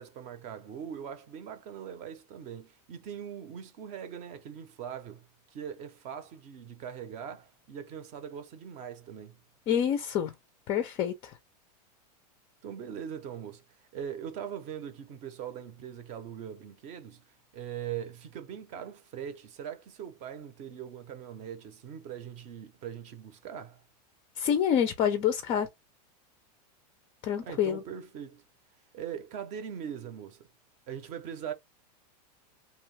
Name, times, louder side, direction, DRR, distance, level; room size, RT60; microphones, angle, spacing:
voice 1, 0.0-9.4 12.6-13.6 13.9-17.2 17.5-23.8 27.4-28.4 28.9-30.5 30.9-31.5, right 8 dB, 35° right, 0.6 m, -41 dB
voice 2, 9.7-10.3 10.7-11.3 24.4-25.7 27.2-27.8, left 9 dB, 25° left, 0.4 m, -27 dB
2.8 x 2.2 x 3.2 m
supercardioid pair, 145°, 21 cm